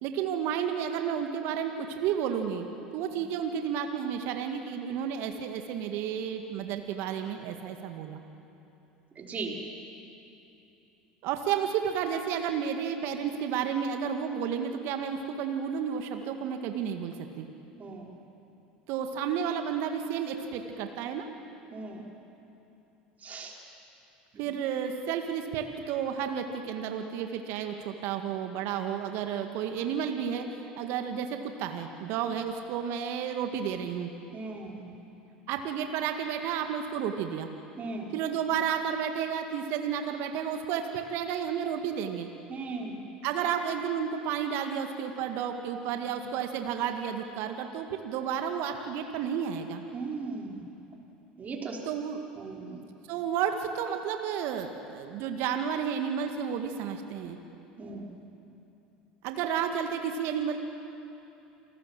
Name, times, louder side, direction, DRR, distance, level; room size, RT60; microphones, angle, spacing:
voice 1, 0.0-2.7 2.9-8.2 11.2-17.5 18.9-21.3 24.4-30.5 30.8-34.1 35.5-37.5 38.1-42.3 43.2-49.8 51.9-52.2 53.1-57.4 59.2-60.6, right 8 dB, 60° right, 5 dB, 1.9 m, -31 dB
voice 2, 9.2-9.6 17.8-18.1 21.7-22.1 23.2-23.6 24.5-24.6 31.1-31.3 32.2-32.3 34.3-35.2 37.8-38.1 42.5-43.0 46.1-46.2 49.9-50.7 51.4-51.8 52.4-52.8 57.8-58.2, right 3 dB, 30° right, -1 dB, 5.3 m, -38 dB
28.0 x 19.5 x 7.8 m, 2.9 s
hypercardioid pair, 75°, 5 cm